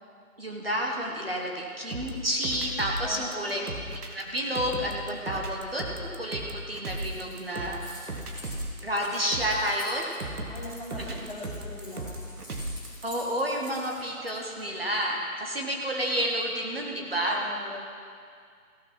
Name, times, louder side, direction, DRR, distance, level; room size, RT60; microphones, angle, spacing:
voice 1, 0.4-3.6 4.1-7.8 8.8-10.1 10.9-11.2 13.0-17.4, equal, 40° right, 0 dB, 1.2 m, -30 dB
sound 1, 1.9-13.0, right 1 dB, 90° right, 1.7 m, -36 dB
voice 2, 3.0-3.6 7.1-7.8 10.5-12.1 17.2-17.7, left 1 dB, 35° left, -5 dB, 2.4 m, -40 dB
Keys jangling, 6.9-14.6, left 1 dB, 20° right, 3.7 m, -48 dB
16.0 x 6.4 x 6.0 m, 2.2 s
figure-of-eight pair, 180°, 44 cm